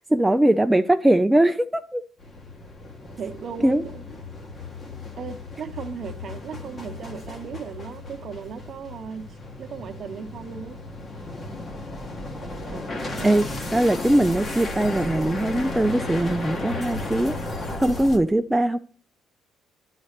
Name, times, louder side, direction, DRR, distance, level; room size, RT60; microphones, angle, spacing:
voice 1, 0.0-2.0 3.6-3.8 13.2-13.5 13.7-17.4 17.8-18.8, right 1 dB, 5° right, 0.3 m, -21 dB
sound 1, 2.2-18.2, left 2 dB, 30° left, 1.4 m, -34 dB
voice 2, 3.2-3.9 5.2-9.3 9.6-10.8 12.7-13.4, right 6 dB, 40° right, 0.9 m, -36 dB
12.0 x 4.0 x 6.6 m
cardioid pair, 160°, 0 cm